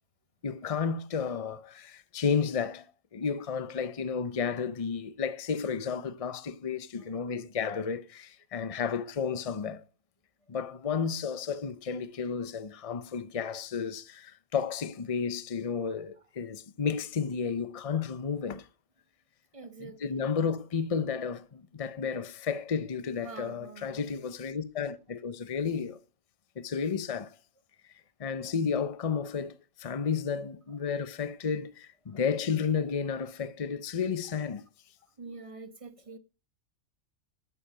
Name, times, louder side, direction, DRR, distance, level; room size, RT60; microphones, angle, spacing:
voice 1, 0.4-2.9 3.1-9.8 10.5-18.7 19.8-26.0 26.6-27.3 28.2-34.6, left 6 dB, 30° left, 0.8 m, -32 dB
voice 2, 7.0-7.4 19.5-20.3 23.2-24.1 26.6-26.7 32.1-32.2 35.2-36.2, right 4 dB, 25° right, 1.1 m, -47 dB
12.0 x 10.5 x 5.1 m
omnidirectional pair, 1.6 m